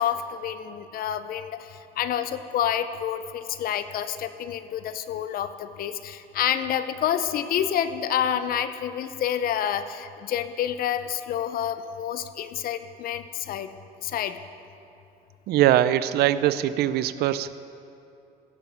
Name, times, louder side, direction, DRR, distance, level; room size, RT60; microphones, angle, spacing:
voice 1, 0.0-13.7 14.0-14.4, left 9 dB, 60° left, 11 dB, 0.6 m, -28 dB
voice 2, 15.5-17.6, right 12 dB, 75° right, 15 dB, 0.4 m, -22 dB
16.0 x 6.4 x 5.7 m, 2.7 s
cardioid pair, 110°, 17 cm